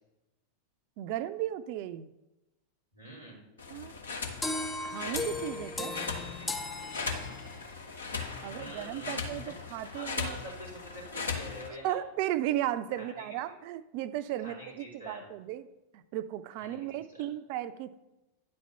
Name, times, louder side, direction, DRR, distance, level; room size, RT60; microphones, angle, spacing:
voice 1, 1.0-2.1 3.7-3.9 4.8-6.1 8.4-10.4 11.8-15.7 15.9-17.9, right 13 dB, 45° right, 13 dB, 0.4 m, -35 dB
voice 2, 2.9-3.4 8.4-12.0 12.9-13.5 14.4-15.3 16.6-17.2, equal, 85° left, -5 dB, 3.3 m, -46 dB
sound 1, 3.6-11.7, left 4 dB, 70° left, 1.0 m, -38 dB
sound 2, 4.4-7.7, left 2 dB, 10° left, 0.6 m, -36 dB
9.6 x 4.3 x 5.6 m, 0.99 s
figure-of-eight pair, 90°, 0 cm